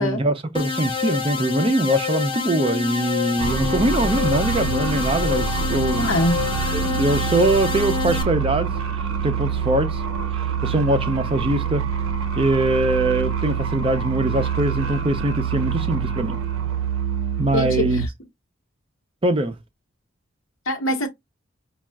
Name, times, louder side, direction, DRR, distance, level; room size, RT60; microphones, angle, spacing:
voice 1, 0.0-6.1 6.7-10.0 10.3-11.8 12.4-16.4 17.4-18.0 19.2-19.6, right 1 dB, 25° right, 0.4 m, -22 dB
sound 1, 0.5-8.2, left 6 dB, 25° left, 0.8 m, -27 dB
sound 2, 3.4-18.1, right 6 dB, 80° right, 0.5 m, -26 dB
voice 2, 6.0-6.4 17.5-18.1 20.7-21.1, left 1 dB, 70° left, 1.1 m, -23 dB
5.3 x 2.3 x 2.3 m
head